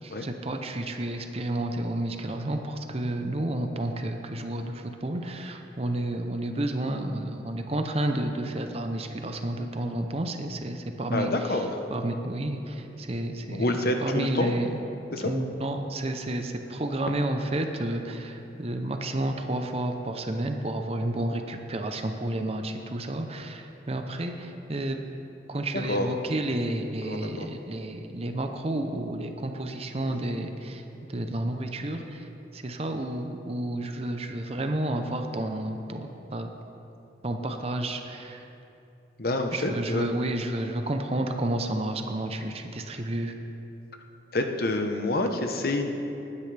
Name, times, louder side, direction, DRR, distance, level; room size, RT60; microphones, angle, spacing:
voice 1, 0.0-11.6 11.9-14.8 15.2-25.0 25.5-30.8 31.1-32.3 32.5-36.5 37.2-38.5 39.5-43.4, right 1 dB, 35° right, 5 dB, 0.7 m, -31 dB
voice 2, 11.1-11.8 13.5-14.5 15.1-15.3 25.9-26.1 27.1-27.5 30.1-30.2 39.2-40.0 44.3-46.0, left 2 dB, 55° left, 5 dB, 1.0 m, -28 dB
19.5 x 9.9 x 3.4 m, 2.9 s
head